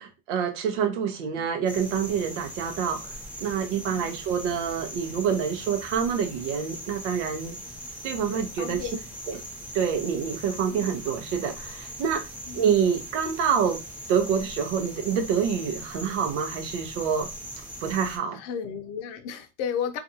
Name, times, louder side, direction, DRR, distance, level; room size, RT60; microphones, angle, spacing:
voice 1, 0.0-3.1 3.4-7.6 8.0-8.8 9.3-9.4 9.7-12.2 12.5-13.8 14.1-17.3 17.8-18.4, right 7 dB, 80° right, 0.8 m, -27 dB
sound 1, 1.7-18.2, equal, 5° right, 0.9 m, -40 dB
voice 2, 3.8-4.2 8.3-9.4 10.7-10.9 12.5-12.6 18.3-20.0, left 7 dB, 45° left, 0.6 m, -34 dB
2.5 x 2.4 x 2.7 m
supercardioid pair, 135°, 36 cm